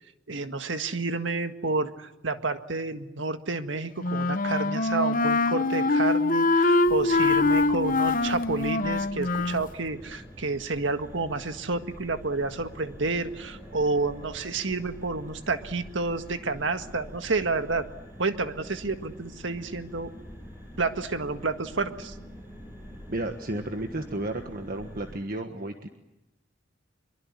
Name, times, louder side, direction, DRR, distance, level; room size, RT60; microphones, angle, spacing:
voice 1, 0.3-17.9 18.2-20.1 20.8-22.1, right 3 dB, 70° right, 8 dB, 1.8 m, -30 dB
Wind instrument woodwind instrument, 4.0-9.7, left 3 dB, 45° left, 0.9 m, -24 dB
sound 1, 6.8-25.2, equal, 10° right, 7.4 m, -46 dB
voice 2, 23.1-25.9, right 1 dB, 50° right, 5 dB, 1.5 m, -33 dB
24.0 x 23.5 x 9.8 m, 0.95 s
head